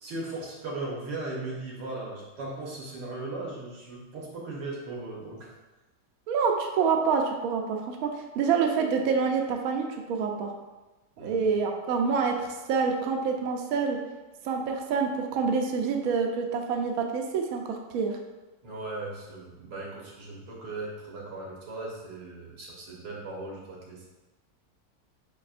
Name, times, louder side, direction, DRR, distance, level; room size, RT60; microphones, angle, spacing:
voice 1, 0.0-5.5 11.2-11.4 18.6-24.1, right 2 dB, 90° right, -3 dB, 1.8 m, -38 dB
voice 2, 6.3-10.5 11.2-14.0 14.4-18.2, right 5 dB, 70° right, 2 dB, 0.9 m, -27 dB
4.9 x 4.2 x 2.5 m, 1.1 s
omnidirectional pair, 1.9 m